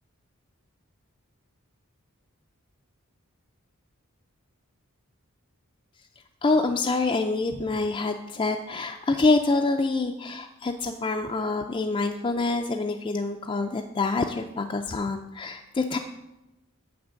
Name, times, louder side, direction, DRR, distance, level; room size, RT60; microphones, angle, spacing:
voice 1, 6.4-16.0, left 3 dB, 25° left, 3 dB, 0.3 m, -26 dB
7.3 x 6.0 x 6.3 m, 0.97 s
head